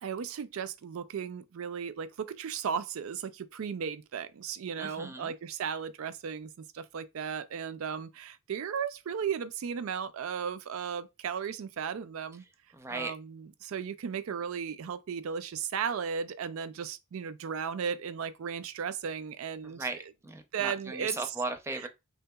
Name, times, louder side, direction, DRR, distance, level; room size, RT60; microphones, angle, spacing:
voice 1, 0.0-12.4 12.9-19.9 20.5-21.3 21.7-21.9, right 7 dB, 75° right, 0.4 m, -35 dB
voice 2, 4.8-5.3 12.7-13.1 19.6-21.9, right 3 dB, 15° right, 0.4 m, -37 dB
3.5 x 2.8 x 2.2 m
head